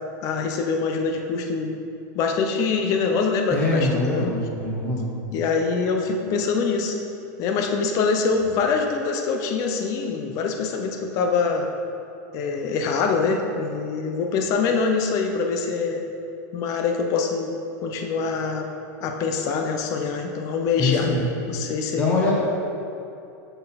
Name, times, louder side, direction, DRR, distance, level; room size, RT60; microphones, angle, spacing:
voice 1, 0.2-1.8 2.1-4.3 5.3-7.0 7.4-11.7 12.3-16.1 16.5-17.5 17.8-18.7 19.0-21.1 21.5-22.1, left 4 dB, 35° left, 4 dB, 0.7 m, -24 dB
voice 2, 3.5-5.1 20.8-21.3 21.9-22.3, left 2 dB, 15° left, -4 dB, 1.4 m, -23 dB
7.9 x 6.4 x 4.2 m, 2.8 s
supercardioid pair, 155°, 9 cm